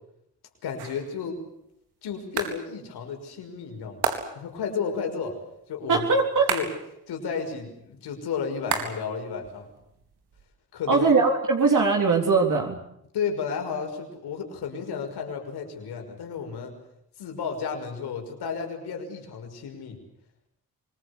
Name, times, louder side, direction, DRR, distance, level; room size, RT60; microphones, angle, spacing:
voice 1, 0.6-1.4 2.0-4.1 4.3-5.4 5.7-6.1 6.5-6.7 7.1-9.7 10.7-11.1 13.1-16.7 17.2-20.0, left 6 dB, 85° left, 4 dB, 6.1 m, -32 dB
sound 1, 0.8-1.2 2.4-2.7 4.0-4.5 6.5-6.9 8.7-9.2 9.4-10.4, right 6 dB, 85° right, 4.2 m, -31 dB
voice 2, 5.9-6.5 10.9-12.8, right 4 dB, 50° right, 1 dB, 3.7 m, -21 dB
25.0 x 20.5 x 8.4 m, 0.76 s
cardioid pair, 75°, 38 cm